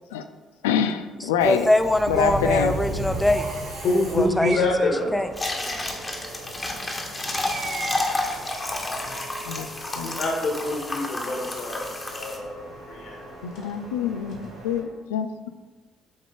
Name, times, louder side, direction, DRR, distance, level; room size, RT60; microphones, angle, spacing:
voice 1, 0.6-1.7 2.1-2.7 9.5-9.7 10.0-10.2 13.4-15.5, left 8 dB, 85° left, 9 dB, 0.3 m, -26 dB
Subway metro underground, 1.3-14.8, right 1 dB, 85° right, 1.8 m, -37 dB
voice 2, 1.4-3.5 4.1-5.3, left 1 dB, 5° left, 8 dB, 0.5 m, -22 dB
Bird, 2.0-2.4 3.2-3.8 4.4-5.0 7.3-8.3, right 5 dB, 50° right, 0.4 m, -37 dB
voice 3, 3.8-5.1 10.0-12.6 12.9-13.2 14.3-14.4, left 2 dB, 65° left, -1 dB, 1.7 m, -26 dB
sound 1, 5.3-12.4, left 2 dB, 25° left, 1.2 m, -30 dB
7.8 x 3.7 x 3.5 m, 1.3 s
hypercardioid pair, 50°, 0 cm